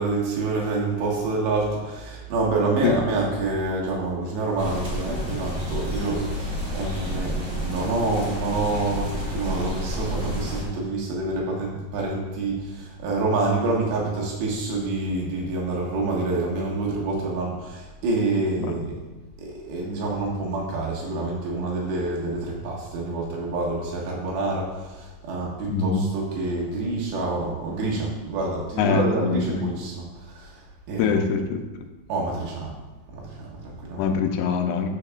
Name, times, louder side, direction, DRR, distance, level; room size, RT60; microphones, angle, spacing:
voice 1, 0.0-19.0 19.4-30.6 30.9-31.2 32.1-32.7 33.1-34.1, right 2 dB, 85° right, -3 dB, 3.8 m, -27 dB
sound 1, 4.6-10.6, equal, 35° right, 1.1 m, -30 dB
voice 2, 25.7-26.1 28.8-29.7 31.0-31.6 34.0-34.9, left 5 dB, 85° left, 5 dB, 2.8 m, -23 dB
12.5 x 6.4 x 2.4 m, 1.1 s
omnidirectional pair, 4.8 m